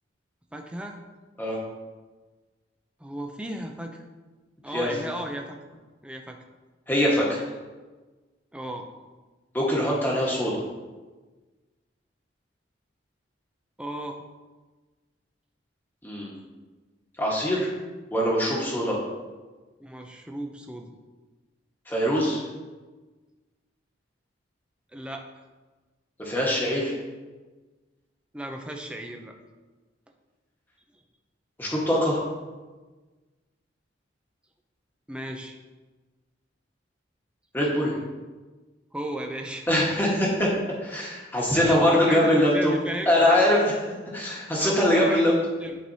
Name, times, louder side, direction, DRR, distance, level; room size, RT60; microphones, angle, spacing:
voice 1, 0.5-1.0 3.0-4.0 4.6-5.6 6.0-6.4 8.5-8.9 13.8-14.2 19.8-20.9 24.9-25.3 28.3-29.3 30.9-31.0 35.1-35.6 38.9-39.7 41.5-43.1 44.6-45.8, right 1 dB, 5° right, 2 dB, 0.5 m, -35 dB
voice 2, 6.9-7.4 9.5-10.6 16.0-16.3 17.2-17.7 18.1-19.0 21.9-22.4 26.2-26.9 31.6-32.2 37.5-37.9 39.7-40.5 40.8-42.7 43.1-43.8 44.1-45.3, left 1 dB, 10° left, -4 dB, 1.3 m, -23 dB
11.0 x 4.6 x 2.7 m, 1.3 s
head